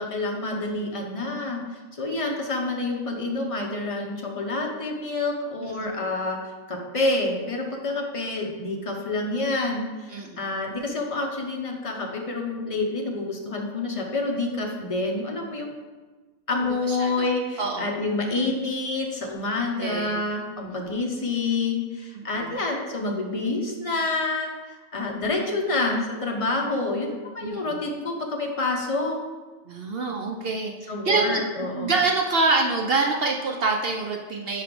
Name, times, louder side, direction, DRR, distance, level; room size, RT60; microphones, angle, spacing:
voice 1, 0.0-1.6 2.0-15.8 16.5-24.5 24.9-29.2 30.9-31.9, left 2 dB, 30° left, 0 dB, 0.7 m, -28 dB
voice 2, 5.6-5.9 10.1-10.4 16.9-17.3 17.6-17.9 19.8-20.2 20.6-20.7 22.1-22.5 27.4-27.8 29.7-30.7 31.0-31.4 31.8-34.6, right 3 dB, 60° right, 1 dB, 0.6 m, -26 dB
4.7 x 4.6 x 5.2 m, 1.3 s
omnidirectional pair, 1.4 m